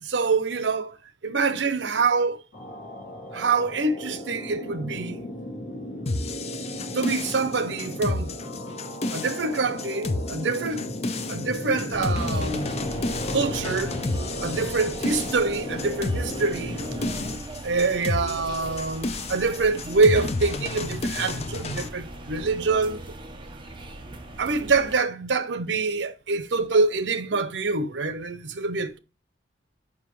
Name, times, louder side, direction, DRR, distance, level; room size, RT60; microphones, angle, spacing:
voice 1, 0.0-0.9 1.2-2.4 3.3-5.2 6.9-8.3 9.1-10.9 11.3-12.7 13.3-14.0 14.4-16.8 17.6-23.0 24.4-29.0, right 4 dB, 80° right, 0.7 m, -25 dB
sound 1, 2.5-17.4, left 1 dB, 70° left, 2.4 m, -35 dB
sound 2, 6.1-21.9, left 2 dB, 35° left, 0.6 m, -31 dB
sound 3, 11.9-24.9, right 1 dB, 25° right, 0.9 m, -40 dB
7.3 x 5.5 x 3.0 m
head